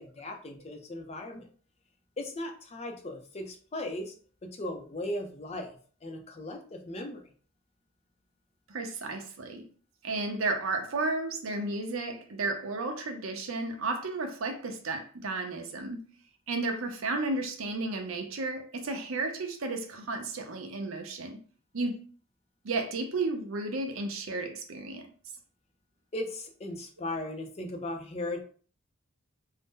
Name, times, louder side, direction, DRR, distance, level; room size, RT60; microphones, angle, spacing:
voice 1, 0.0-1.5 2.2-4.1 4.4-7.3 26.1-28.4, left 1 dB, 30° left, 0.5 m, -37 dB
voice 2, 8.7-9.6 10.0-16.1 16.5-21.4 21.7-22.0 22.6-25.1, right 3 dB, 75° right, 0.6 m, -33 dB
2.6 x 2.1 x 3.6 m
head